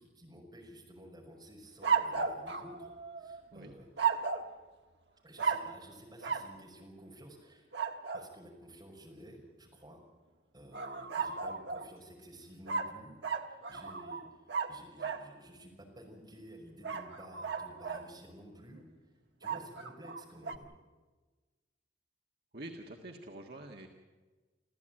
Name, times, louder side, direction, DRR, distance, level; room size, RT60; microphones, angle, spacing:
voice 1, 0.0-2.9 3.2-3.9 5.2-7.7 8.1-10.0 10.5-13.2 13.4-18.8 19.4-20.7, equal, 20° right, -1 dB, 5.7 m, -53 dB
sound 1, 1.8-3.4 4.0-4.6 5.4-5.8 6.2-6.5 7.7-8.3 10.7-11.9 12.7-15.3 16.8-18.1 19.4-20.6, right 6 dB, 75° right, 1.4 m, -35 dB
voice 2, 22.5-23.9, right 1 dB, 60° right, 1 dB, 1.7 m, -46 dB
27.5 x 14.5 x 9.0 m, 1.3 s
head